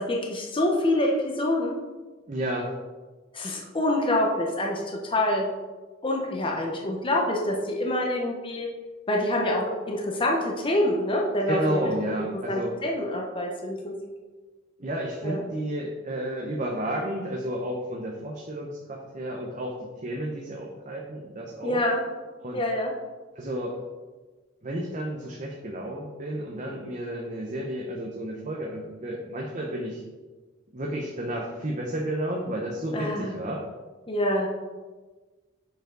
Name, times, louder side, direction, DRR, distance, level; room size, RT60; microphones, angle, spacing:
voice 1, 0.0-1.8 3.3-5.5 6.0-8.7 9.1-11.8 12.5-13.9 15.2-15.4 21.6-22.0 22.5-22.9 32.9-33.3 34.1-34.5, left 1 dB, 25° left, 0 dB, 0.8 m, -26 dB
voice 2, 2.3-2.7 11.5-12.7 14.8-21.8 22.4-22.6 23.4-23.8 24.6-30.0 30.7-33.7, right 1 dB, 40° right, -1 dB, 0.8 m, -32 dB
6.9 x 5.3 x 3.8 m, 1.3 s
head